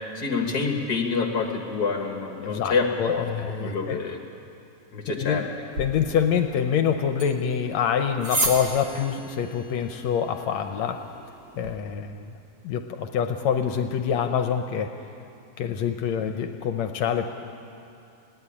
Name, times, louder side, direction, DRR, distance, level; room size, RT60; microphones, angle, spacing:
voice 1, 0.1-3.3 3.6-4.2 4.9-5.5, left 4 dB, 45° left, 3 dB, 1.5 m, -27 dB
voice 2, 2.4-4.0 5.1-5.5 5.8-11.0 11.6-12.3 12.6-14.9 15.6-17.3, left 8 dB, 75° left, 6 dB, 1.9 m, -26 dB
sound 1, 5.7-11.7, right 2 dB, 40° right, 2.9 m, -34 dB
20.0 x 16.5 x 10.0 m, 2.7 s
omnidirectional pair, 3.5 m